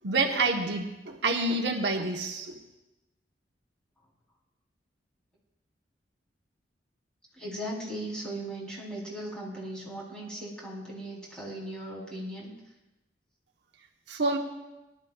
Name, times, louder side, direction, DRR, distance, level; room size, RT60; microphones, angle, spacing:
voice 1, 0.0-2.5 14.1-14.4, right 3 dB, 75° right, 2 dB, 1.1 m, -27 dB
voice 2, 7.4-12.5, right 1 dB, 5° left, -5 dB, 3.6 m, -38 dB
21.5 x 11.5 x 2.4 m, 0.98 s
head